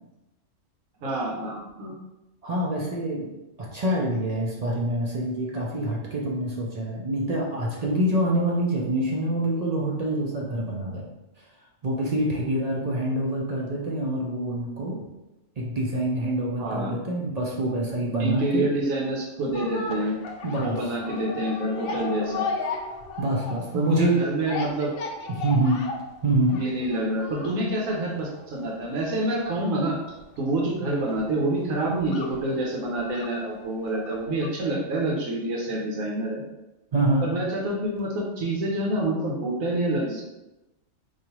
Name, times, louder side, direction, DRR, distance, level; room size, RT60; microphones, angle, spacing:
voice 1, 1.0-2.0 16.6-17.0 18.2-20.2 20.5-22.4 23.7-24.9 26.5-30.0 30.4-36.4 37.2-40.2, right 1 dB, 90° right, -2 dB, 1.2 m, -27 dB
voice 2, 2.4-3.3 3.6-11.1 11.8-15.0 15.6-18.7 20.4-20.8 23.2-24.2 25.3-25.8 26.2-26.6 36.9-37.3, right 1 dB, 55° right, -3 dB, 0.4 m, -26 dB
sound 1, 19.4-34.6 34.9-35.0, left 4 dB, 60° left, 0.7 m, -36 dB
4.8 x 2.6 x 2.9 m, 1.0 s
omnidirectional pair, 1.4 m